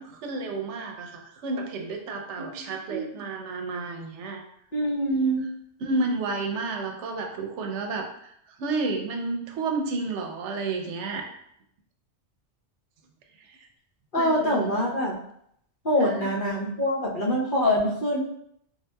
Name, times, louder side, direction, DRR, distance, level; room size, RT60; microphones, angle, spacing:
voice 1, 0.0-4.4 5.8-11.3 13.4-13.6 14.2-15.0 16.0-16.3, right 3 dB, 85° right, 3 dB, 0.9 m, -31 dB
voice 2, 4.7-5.4 14.1-15.1 15.8-18.2, equal, 50° left, -5 dB, 1.0 m, -24 dB
4.1 x 2.8 x 2.2 m, 0.70 s
omnidirectional pair, 1.2 m